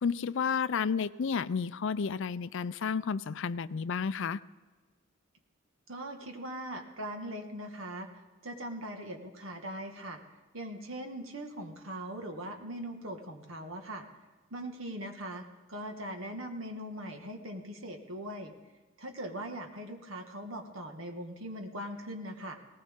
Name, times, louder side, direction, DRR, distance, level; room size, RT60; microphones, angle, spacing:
voice 1, 0.0-4.4, left 6 dB, 60° left, 16 dB, 0.4 m, -31 dB
voice 2, 5.9-8.1 8.4-10.2 10.5-14.0 14.5-18.5 19.0-22.6, right 1 dB, 70° right, 4 dB, 1.7 m, -40 dB
19.0 x 19.0 x 3.7 m, 1.3 s
head